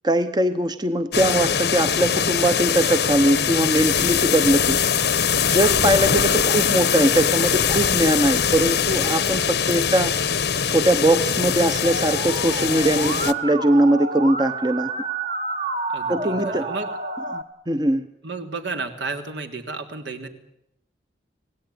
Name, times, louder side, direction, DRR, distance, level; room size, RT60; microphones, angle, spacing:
voice 1, 0.0-4.8 5.4-10.1 10.7-14.9 16.1-16.7 17.3-18.1, right 1 dB, 20° right, 9 dB, 0.9 m, -21 dB
sound 1, 1.1-13.3, left 7 dB, 65° left, 1.0 m, -22 dB
voice 2, 6.2-6.8 15.9-16.9 18.2-20.3, right 3 dB, 80° right, 5 dB, 3.1 m, -33 dB
Musical instrument, 11.8-17.4, right 3 dB, 40° right, 1.5 m, -29 dB
26.0 x 17.5 x 9.8 m, 0.83 s
head